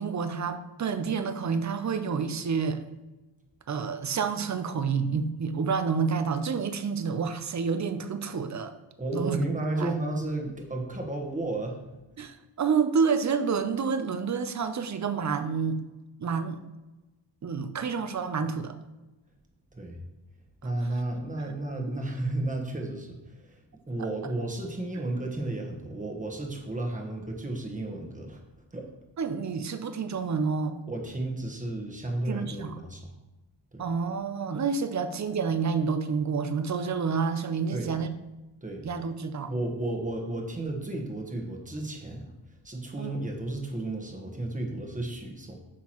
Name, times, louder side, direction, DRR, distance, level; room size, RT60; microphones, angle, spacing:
voice 1, 0.0-2.8 3.7-8.7 9.1-9.4 9.8-9.9 12.2-15.8 16.2-16.6 17.4-18.8 29.2-30.8 32.3-32.7 33.8-38.1 38.8-39.5 42.9-43.2, right 5 dB, 35° right, 10 dB, 0.6 m, -29 dB
voice 2, 9.0-11.8 19.7-20.0 20.6-23.6 23.9-28.4 28.7-28.9 30.9-33.1 33.7-33.8 37.7-37.9 38.6-38.8 39.5-42.3 42.6-45.6, right 2 dB, 15° right, 1 dB, 1.2 m, -33 dB
8.6 x 5.7 x 3.0 m, 1.1 s
wide cardioid pair, 115°, 48 cm